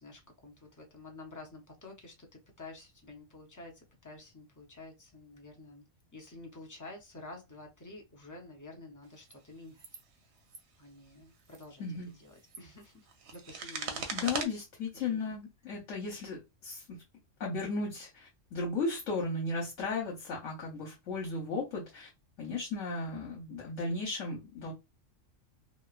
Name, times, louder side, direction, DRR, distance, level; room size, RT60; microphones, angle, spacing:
voice 1, 0.0-5.8 6.1-9.8 10.8-14.4 14.9-15.2, left 2 dB, 30° left, 0.3 m, -50 dB
sound 1, 9.2-9.3 9.8-10.0 10.4-10.6 11.4-11.7 12.2-14.5, right 5 dB, 65° right, 0.8 m, -40 dB
voice 2, 14.1-17.0 17.4-22.1 22.4-24.7, left 3 dB, 75° left, 1.2 m, -35 dB
3.0 x 2.1 x 2.3 m
omnidirectional pair, 1.3 m